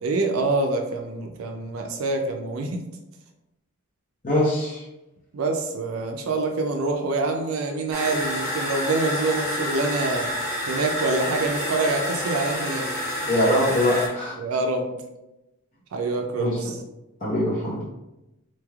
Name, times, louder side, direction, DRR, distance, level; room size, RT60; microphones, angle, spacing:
voice 1, 0.0-2.8 5.3-10.3 10.7-12.9 14.4-14.9 15.9-16.8, right 3 dB, 75° right, 3 dB, 0.4 m, -26 dB
voice 2, 4.2-4.8 13.3-14.3 16.4-16.6 17.2-17.8, left 1 dB, 40° left, -6 dB, 0.8 m, -22 dB
sound 1, 7.9-14.1, left 1 dB, 10° right, 1.3 m, -29 dB
4.1 x 3.2 x 2.3 m, 0.95 s
head